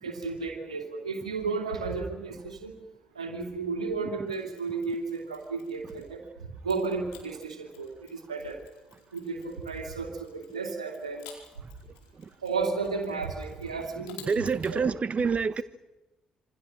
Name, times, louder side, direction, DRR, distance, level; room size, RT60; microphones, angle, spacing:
voice 1, 0.0-2.7 3.1-6.2 6.6-8.6 9.1-11.3 12.4-14.9, right 4 dB, 90° right, 2.7 m, -33 dB
Mechanisms, 4.3-6.2 6.7-14.8, left 8 dB, 75° left, 4.5 m, -54 dB
voice 2, 14.3-15.6, right 5 dB, 40° right, 1.1 m, -27 dB
27.0 x 25.0 x 6.6 m
hypercardioid pair, 45°, 3 cm